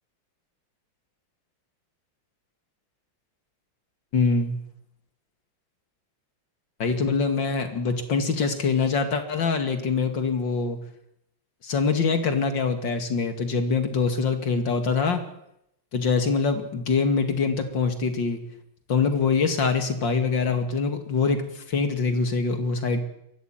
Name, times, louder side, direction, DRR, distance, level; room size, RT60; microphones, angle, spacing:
voice 1, 4.1-4.6 6.8-10.8 11.6-15.2 15.9-18.4 18.9-23.0, left 4 dB, 65° left, 7 dB, 3.0 m, -24 dB
22.5 x 16.0 x 9.1 m, 0.79 s
omnidirectional pair, 2.2 m